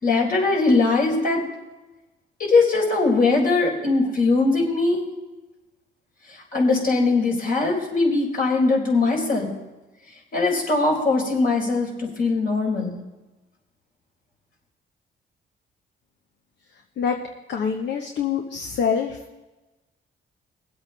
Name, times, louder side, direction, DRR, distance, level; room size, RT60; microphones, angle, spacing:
voice 1, 0.0-1.4 2.4-5.1 6.3-9.5 10.3-13.0, left 3 dB, 45° left, -1 dB, 4.1 m, -21 dB
voice 2, 17.5-19.2, left 6 dB, 65° left, 4 dB, 1.0 m, -25 dB
22.0 x 8.1 x 3.3 m, 1.1 s
cardioid pair, 90°, 20 cm